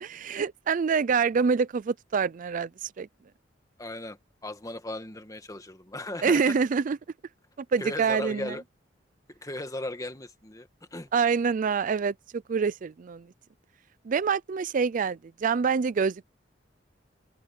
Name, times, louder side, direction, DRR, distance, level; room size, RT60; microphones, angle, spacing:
voice 1, 0.0-3.1 6.2-7.0 7.7-8.6 11.1-13.3 14.1-16.2, right 5 dB, 45° right, 0.4 m, -26 dB
voice 2, 3.8-6.5 7.8-8.6 9.4-11.1, left 1 dB, 20° left, 1.8 m, -37 dB
head